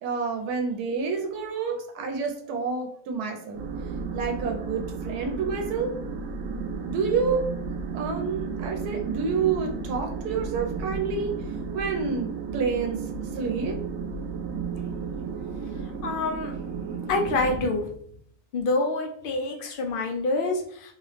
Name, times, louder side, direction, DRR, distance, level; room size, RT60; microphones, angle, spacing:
voice 1, 0.0-3.6 4.1-5.9 6.9-7.5 7.9-11.3 11.7-13.0 13.4-13.8, right 5 dB, 85° right, 3 dB, 1.1 m, -28 dB
sound 1, 3.5-17.7, right 5 dB, 70° right, 1.0 m, -33 dB
voice 2, 16.0-16.5 17.1-17.9 18.5-20.9, left 2 dB, 70° left, 2 dB, 0.5 m, -26 dB
3.2 x 2.9 x 3.0 m, 0.63 s
omnidirectional pair, 1.6 m